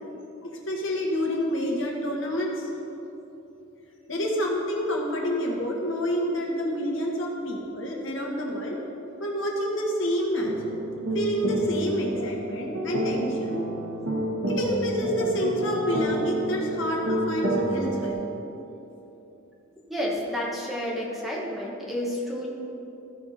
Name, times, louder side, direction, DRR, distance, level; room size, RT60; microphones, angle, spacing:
voice 1, 0.4-2.7 4.1-8.8 9.2-10.6 11.1-13.6 14.5-18.2, equal, 70° left, -1 dB, 1.5 m, -28 dB
sound 1, 10.4-18.1, right 1 dB, 75° right, 1.3 m, -29 dB
voice 2, 19.9-22.5, equal, ahead, -4 dB, 1.2 m, -30 dB
14.5 x 5.4 x 4.2 m, 3.0 s
head